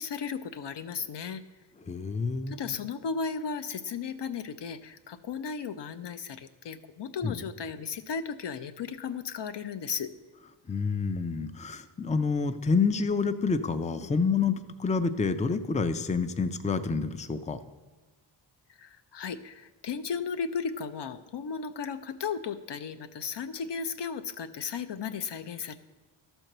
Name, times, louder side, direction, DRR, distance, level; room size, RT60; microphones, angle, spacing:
voice 1, 0.0-1.4 2.5-10.1 18.8-25.8, left 6 dB, 60° left, 11 dB, 0.7 m, -35 dB
voice 2, 1.9-2.6 7.2-7.4 10.7-17.6, left 4 dB, 15° left, 11 dB, 0.4 m, -28 dB
12.5 x 4.5 x 6.6 m, 1.2 s
wide cardioid pair, 80°, 47 cm